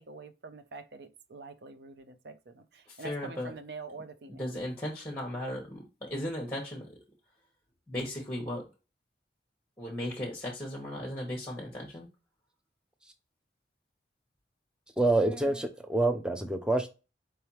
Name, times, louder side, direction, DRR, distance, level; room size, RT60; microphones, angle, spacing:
voice 1, 0.0-4.5 15.2-15.7, right 3 dB, 65° right, 0.6 m, -46 dB
voice 2, 3.0-3.5 4.4-6.9 7.9-8.6 9.8-12.1, left 1 dB, 10° left, 1.1 m, -36 dB
voice 3, 15.0-16.9, right 2 dB, 5° right, 0.5 m, -27 dB
4.6 x 3.4 x 2.8 m
head